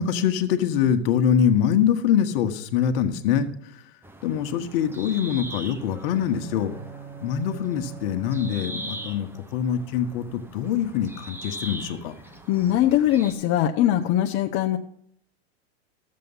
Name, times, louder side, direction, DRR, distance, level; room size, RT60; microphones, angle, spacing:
voice 1, 0.0-3.5 4.2-6.7 7.2-12.1, left 8 dB, 55° left, 8 dB, 1.3 m, -24 dB
sound 1, 4.0-13.3, right 1 dB, 5° right, 0.9 m, -41 dB
Bowed string instrument, 5.8-9.6, right 7 dB, 50° right, 5.3 m, -43 dB
voice 2, 12.5-14.8, left 12 dB, 35° left, 3 dB, 0.7 m, -21 dB
13.5 x 7.6 x 5.6 m, 0.65 s
hypercardioid pair, 130°, 34 cm